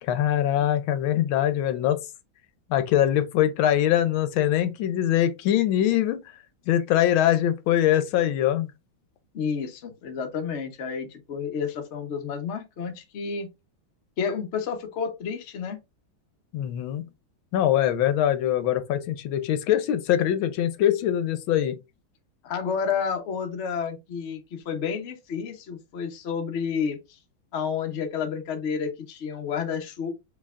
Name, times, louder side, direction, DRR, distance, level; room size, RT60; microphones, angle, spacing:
voice 1, 0.0-2.0 2.7-6.2 6.7-8.7 16.5-17.0 17.5-21.8, left 11 dB, 80° left, 1.4 m, -23 dB
voice 2, 9.3-13.5 14.2-15.8 22.4-27.2 27.5-30.1, left 6 dB, 55° left, 0.7 m, -30 dB
5.4 x 3.4 x 2.4 m
omnidirectional pair, 2.2 m